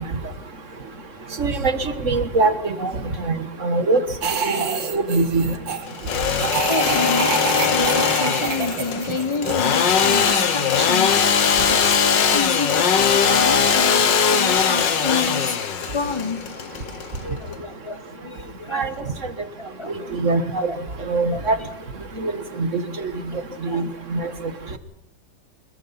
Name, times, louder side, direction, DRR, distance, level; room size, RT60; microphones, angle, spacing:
voice 1, 1.4-2.9 3.2-4.0 4.4-4.6 4.9-5.5 18.7-18.9 20.1-20.7 21.1-21.6 22.2-22.3 22.6-22.7 23.6-24.3, right 3 dB, 40° right, 9 dB, 1.9 m, -22 dB
sound 1, 4.2-5.9 6.4-9.9, right 6 dB, 80° right, 2.6 m, -27 dB
Engine / Sawing, 5.9-17.5, left 7 dB, 70° left, 2.0 m, -20 dB
voice 2, 6.7-15.6 15.9-16.4 17.2-19.0 19.6-19.9 20.7-20.8 21.3-21.7 23.3-23.4 23.7-23.9, left 4 dB, 20° left, 11 dB, 0.8 m, -29 dB
25.5 x 21.0 x 5.9 m, 0.74 s
omnidirectional pair, 2.1 m